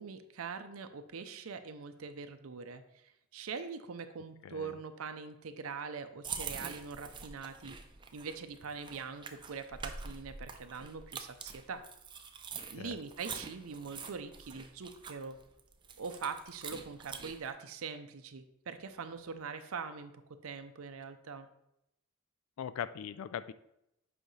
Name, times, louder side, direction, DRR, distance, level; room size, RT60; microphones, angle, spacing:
voice 1, 0.0-7.8 8.1-11.8 12.7-15.4 16.0-20.1 20.4-21.5, right 5 dB, 80° right, 9 dB, 0.6 m, -43 dB
voice 2, 4.4-4.8 12.8-13.0 22.6-23.5, left 8 dB, 80° left, 14 dB, 0.3 m, -40 dB
sound 1, 6.2-17.5, right 5 dB, 20° right, 0.5 m, -45 dB
7.8 x 5.0 x 3.1 m, 0.83 s
head